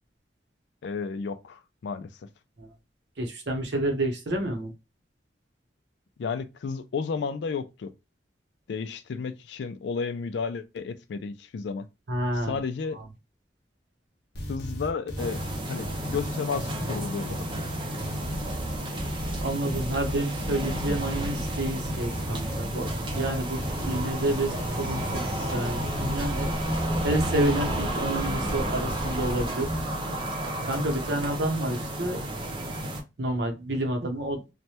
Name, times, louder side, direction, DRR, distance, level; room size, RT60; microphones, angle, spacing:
voice 1, 0.8-2.1 6.2-7.9 8.7-11.9 12.3-13.0 14.5-17.5, left 5 dB, 75° left, 0.4 m, -32 dB
voice 2, 3.2-4.7 12.1-12.6 19.4-22.9 23.1-26.6 27.0-29.7 30.7-32.2 33.2-34.4, right 1 dB, 75° right, 0.8 m, -29 dB
sound 1, 14.3-29.8, equal, 60° left, 0.8 m, -35 dB
sound 2, 15.2-33.0, right 1 dB, 25° right, 0.5 m, -32 dB
sound 3, 23.7-29.5, equal, 10° left, 0.8 m, -39 dB
3.2 x 2.1 x 2.7 m
head